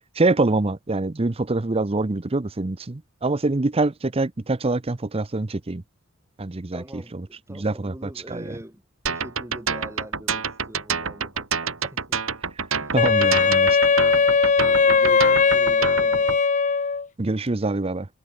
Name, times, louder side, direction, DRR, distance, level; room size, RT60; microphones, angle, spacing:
voice 1, 0.2-5.8 6.4-7.2 7.5-8.6 12.9-13.8 17.2-18.1, right 2 dB, 30° right, 0.7 m, -25 dB
voice 2, 6.7-12.2 12.8-13.0 14.6-16.4, right 1 dB, 15° right, 4.0 m, -43 dB
sound 1, 9.1-16.4, right 5 dB, 85° right, 4.2 m, -27 dB
Wind instrument woodwind instrument, 13.0-17.1, left 5 dB, 40° left, 0.7 m, -19 dB
head